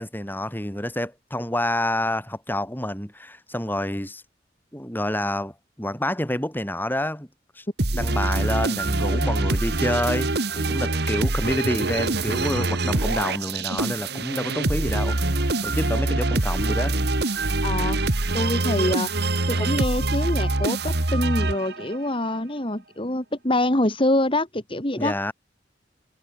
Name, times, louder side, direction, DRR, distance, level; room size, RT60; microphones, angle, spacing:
voice 1, 0.0-4.2 4.7-7.3 7.6-7.7 7.9-17.0 25.0-25.3, left 1 dB, 10° left, 6.0 m, -28 dB
sound 1, 7.8-22.0, right 2 dB, 65° right, 1.9 m, -24 dB
voice 2, 17.6-18.0 18.3-19.1 19.5-25.1, left 1 dB, 30° left, 3.1 m, -25 dB
head